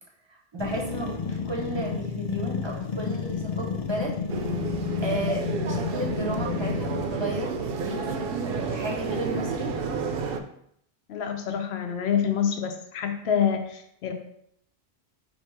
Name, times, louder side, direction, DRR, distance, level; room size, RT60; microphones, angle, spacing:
voice 1, 0.3-4.1 5.0-9.7, right 1 dB, 30° right, 1 dB, 0.7 m, -33 dB
sound 1, 0.6-7.4, left 6 dB, 50° left, 0.5 m, -31 dB
sound 2, 4.3-10.4, right 5 dB, 65° right, 0.7 m, -31 dB
voice 2, 11.1-14.1, left 8 dB, 80° left, 5 dB, 0.9 m, -27 dB
4.2 x 2.7 x 4.6 m, 0.71 s
omnidirectional pair, 1.1 m